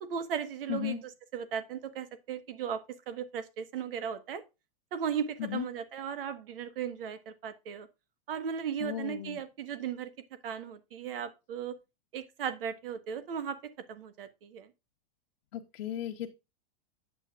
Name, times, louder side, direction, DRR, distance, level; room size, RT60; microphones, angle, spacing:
voice 1, 0.0-4.4 4.9-7.9 8.3-10.1 10.4-11.7 12.1-13.6 13.9-14.7, right 8 dB, 70° right, 1.4 m, -36 dB
voice 2, 0.7-1.0 5.4-5.6 8.8-9.4 15.5-16.3, left 11 dB, 75° left, 1.1 m, -35 dB
9.0 x 7.9 x 2.4 m
supercardioid pair, 175°, 29 cm